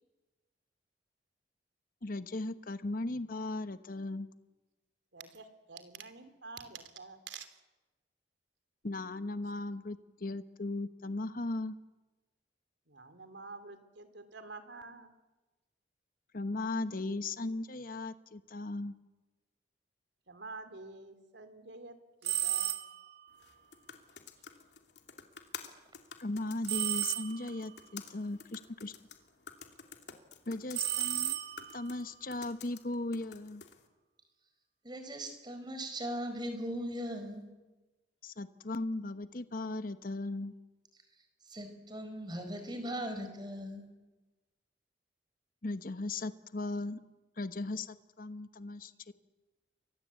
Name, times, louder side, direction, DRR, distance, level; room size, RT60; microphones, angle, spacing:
voice 1, 2.0-4.3 8.8-11.7 16.3-18.9 26.2-28.9 30.5-31.4 31.7-33.6 38.2-40.5 45.6-47.0 47.4-49.1, left 2 dB, 50° left, 11 dB, 1.1 m, -37 dB
voice 2, 5.1-7.5 12.9-15.1 20.3-22.0 22.2-22.7, right 4 dB, 80° right, 10 dB, 3.0 m, -48 dB
sound 1, 22.2-23.1 26.7-27.7 30.7-31.9, right 12 dB, 65° right, 2.0 m, -33 dB
sound 2, 23.3-33.9, left 7 dB, 70° left, 2.8 m, -51 dB
voice 3, 34.8-37.4 41.5-43.8, equal, 25° right, 7 dB, 4.8 m, -39 dB
29.5 x 23.5 x 8.4 m, 1.2 s
head